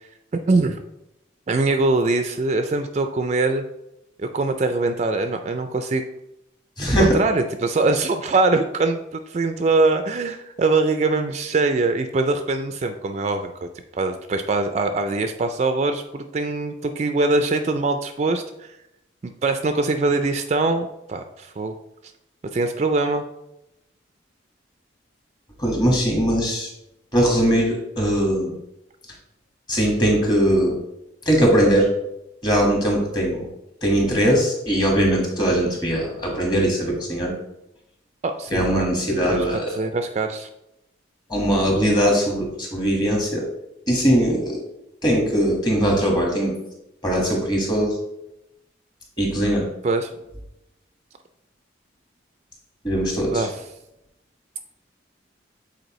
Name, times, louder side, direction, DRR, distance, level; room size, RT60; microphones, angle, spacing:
voice 1, 0.5-0.8 1.5-3.6 4.2-6.0 7.0-13.7 13.9-18.7 19.2-21.7 22.5-23.2 38.2-38.9 39.3-40.5 41.5-41.7 49.8-50.1 53.3-53.6, right 3 dB, 35° right, 7 dB, 0.3 m, -22 dB
voice 2, 6.8-7.2 25.6-26.7 27.1-28.5 29.7-30.8 31.2-31.9 32.4-33.5 33.8-37.3 38.5-39.8 41.3-43.4 43.9-44.6 45.0-46.5 47.0-48.0 49.2-49.7 52.8-53.5, equal, 20° left, -1 dB, 1.5 m, -20 dB
7.8 x 4.2 x 3.1 m, 0.87 s
head